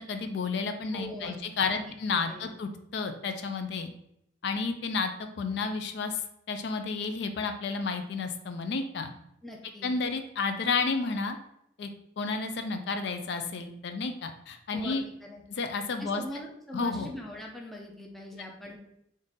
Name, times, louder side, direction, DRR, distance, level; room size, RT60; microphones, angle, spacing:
voice 1, 0.0-3.9 4.4-6.1 6.5-9.1 9.8-11.4 11.8-11.9 12.2-15.0 15.5-16.2 16.7-17.1, left 4 dB, 60° left, 7 dB, 0.4 m, -31 dB
voice 2, 0.9-2.4 9.4-9.9 14.7-15.4 16.0-18.8, left 1 dB, ahead, -1 dB, 0.5 m, -42 dB
3.6 x 2.5 x 3.9 m, 0.78 s
head